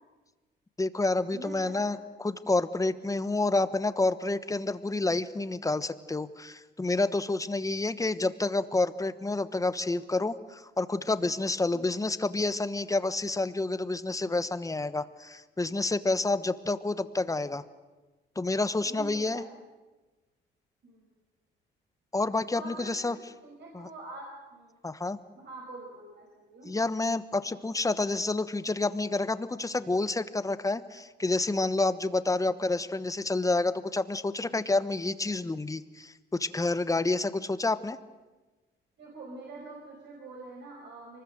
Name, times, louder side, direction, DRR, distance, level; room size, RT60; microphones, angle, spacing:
voice 1, 0.8-17.6 18.4-19.4 22.1-23.2 23.7-23.9 24.8-25.2 26.7-38.0, left 2 dB, 15° left, 13 dB, 1.1 m, -29 dB
voice 2, 1.3-1.8 11.7-11.9 18.8-19.5 20.8-21.1 22.5-23.1 23.4-24.7 25.4-26.7 39.0-41.2, right 2 dB, 60° right, -1 dB, 5.3 m, -45 dB
24.0 x 20.0 x 7.9 m, 1.2 s
cardioid pair, 90°, 20 cm